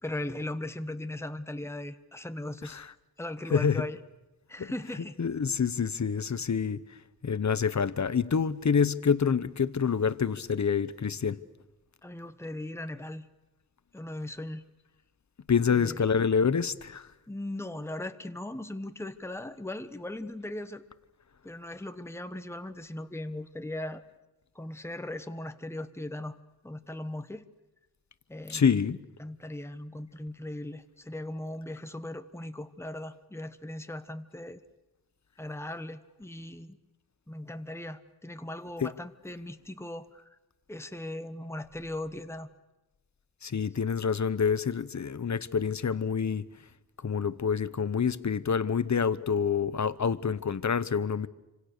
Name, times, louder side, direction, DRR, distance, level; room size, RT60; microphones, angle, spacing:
voice 1, 0.0-2.8 3.2-4.0 4.5-5.2 12.0-13.3 13.9-14.6 15.7-16.0 17.3-20.9 21.4-24.0 24.5-26.4 26.6-27.4 28.3-28.8 29.2-34.6 35.4-36.8 37.3-40.3 40.7-42.5, left 1 dB, 5° left, 9 dB, 1.2 m, -38 dB
voice 2, 3.5-3.8 4.6-4.7 5.2-6.8 7.2-11.4 15.5-17.1 28.5-29.0 38.8-38.9 43.4-46.4 47.0-51.3, left 6 dB, 50° left, 15 dB, 1.0 m, -27 dB
27.0 x 26.0 x 6.7 m, 1.0 s
wide cardioid pair, 115°, 37 cm